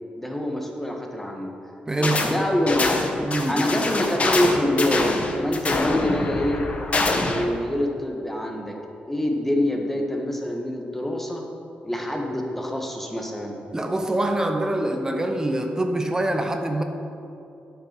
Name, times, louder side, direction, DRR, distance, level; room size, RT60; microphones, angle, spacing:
voice 1, 0.2-1.5 2.0-2.9 3.5-6.7 7.2-8.7 9.1-11.4 11.8-13.6, left 1 dB, 10° left, 1 dB, 1.5 m, -25 dB
voice 2, 1.9-2.3 3.2-3.8 13.7-16.8, right 1 dB, 20° right, 5 dB, 0.8 m, -25 dB
sound 1, 2.0-2.4 2.7-7.5, left 3 dB, 40° left, 1.1 m, -25 dB
8.7 x 6.9 x 5.9 m, 2.8 s
cardioid pair, 80°, 3 cm